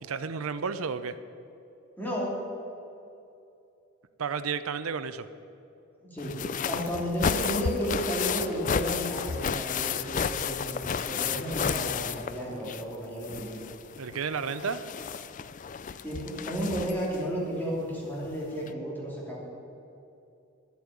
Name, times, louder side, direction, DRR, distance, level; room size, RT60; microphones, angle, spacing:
voice 1, 0.0-1.2 4.2-5.3 14.0-14.8, right 6 dB, 90° right, 12 dB, 0.6 m, -32 dB
voice 2, 2.0-2.3 6.1-6.4 6.7-13.6 16.0-19.4, equal, 10° left, -5 dB, 3.0 m, -33 dB
sound 1, 6.2-12.9 13.2-17.2 18.2-18.3 18.7-18.8, left 7 dB, 40° left, 0.4 m, -32 dB
11.0 x 8.5 x 9.5 m, 2.7 s
head